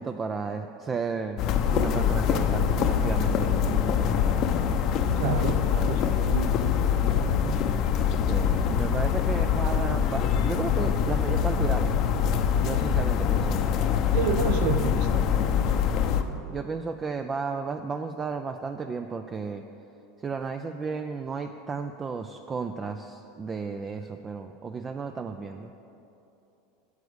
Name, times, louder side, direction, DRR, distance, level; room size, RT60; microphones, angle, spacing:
voice 1, 0.0-1.4 1.7-4.5 8.2-12.1 12.6-13.8 16.5-19.6 20.2-25.7, right 5 dB, 20° right, 7 dB, 0.4 m, -33 dB
sound 1, 1.4-16.2, left 8 dB, 40° left, 0.7 m, -24 dB
voice 2, 5.1-7.6 14.1-16.4, right 6 dB, 60° right, 10 dB, 0.7 m, -32 dB
9.6 x 6.9 x 8.0 m, 2.9 s
supercardioid pair, 145°, 0 cm